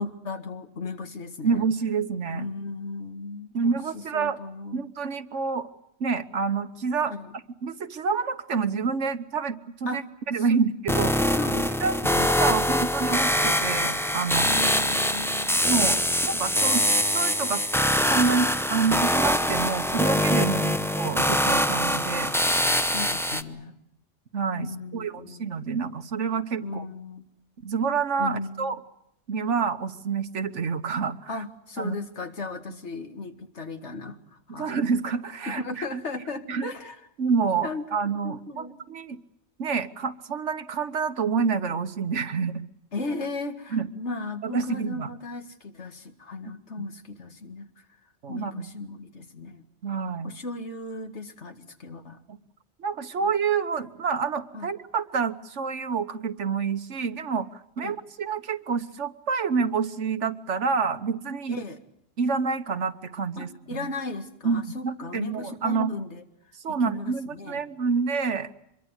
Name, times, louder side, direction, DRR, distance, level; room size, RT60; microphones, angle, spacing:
voice 1, 0.0-1.7 2.3-4.9 7.1-7.3 9.9-10.0 10.4-10.6 11.3-11.7 12.0-12.3 14.5-15.7 20.5-20.9 22.9-23.8 24.6-25.5 26.6-27.3 28.2-28.7 31.3-34.8 35.5-37.0 37.6-37.9 38.2-38.8 42.9-47.9 48.3-49.6 50.2-52.2 53.2-53.3 54.5-54.7 57.8-58.0 61.5-61.8 63.4-66.2 66.7-67.7, left 3 dB, 75° left, 7 dB, 2.3 m, -36 dB
voice 2, 1.4-2.5 3.5-4.4 4.7-5.7 6.0-7.1 7.6-11.2 11.8-12.1 12.4-14.5 15.6-17.6 18.1-20.6 21.0-22.3 24.3-26.8 27.6-28.8 29.3-31.3 31.8-32.0 34.5-35.8 36.5-36.7 37.2-39.2 39.6-42.6 43.7-43.9 44.4-45.1 46.8-46.9 48.2-48.7 49.8-50.3 52.3-52.4 52.8-61.6 62.2-63.9 64.4-65.9 66.5-68.5, right 5 dB, 90° right, 10 dB, 1.6 m, -28 dB
sound 1, 10.9-23.4, equal, ahead, 0.8 m, -24 dB
25.0 x 22.5 x 8.2 m, 0.77 s
omnidirectional pair, 1.2 m